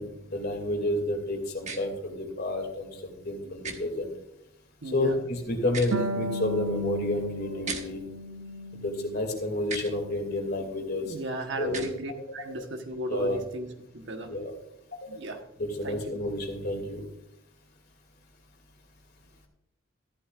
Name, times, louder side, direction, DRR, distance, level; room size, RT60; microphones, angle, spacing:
voice 1, 0.0-4.1 4.8-8.0 8.8-11.1 11.6-11.8 13.1-13.4 14.3-14.5 15.6-17.0, left 1 dB, 50° left, 3 dB, 2.5 m, -30 dB
sound 1, 1.6-1.8 3.6-3.8 5.6-6.0 7.6-7.8 9.6-9.9 11.6-11.9, right 4 dB, 35° right, 1.2 m, -36 dB
voice 2, 4.8-5.2 11.0-14.3 15.1-15.4 15.8-16.1, right 1 dB, 60° right, 5 dB, 1.3 m, -35 dB
Harp, 5.9-9.3 9.6-10.7, equal, 85° right, 0.8 m, -35 dB
14.0 x 11.5 x 2.5 m, 0.81 s
head